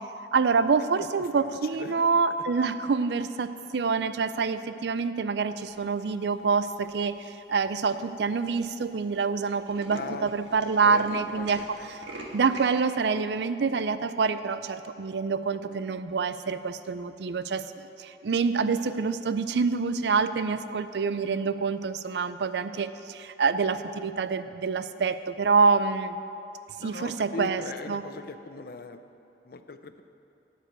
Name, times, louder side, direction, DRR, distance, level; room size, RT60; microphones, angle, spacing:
voice 1, 0.3-11.6 12.3-17.6 18.0-26.2 26.8-27.6 27.9-28.0, right 5 dB, 70° right, 12 dB, 0.4 m, -26 dB
voice 2, 1.0-2.1 2.5-2.6 9.9-10.3 10.8-11.1 11.4-11.7 15.7-15.8 26.8-29.0 29.4-30.0, left 3 dB, 55° left, 9 dB, 0.5 m, -40 dB
Tools, 6.7-7.2 7.8-7.9 8.1-8.2 8.4-8.6 8.9-9.1 9.3-12.8, right 1 dB, 85° right, 1.5 m, -44 dB
12.5 x 5.1 x 8.8 m, 2.8 s
head